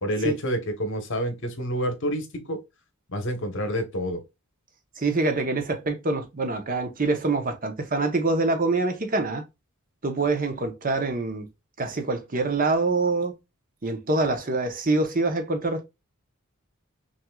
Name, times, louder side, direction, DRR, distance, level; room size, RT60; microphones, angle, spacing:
voice 1, 0.0-2.6 3.1-4.2, equal, 55° left, 1.1 m, -28 dB
voice 2, 5.0-9.4 10.0-11.5 11.8-13.3 13.8-15.8, right 3 dB, 40° right, 0.8 m, -25 dB
5.8 x 2.6 x 2.3 m
head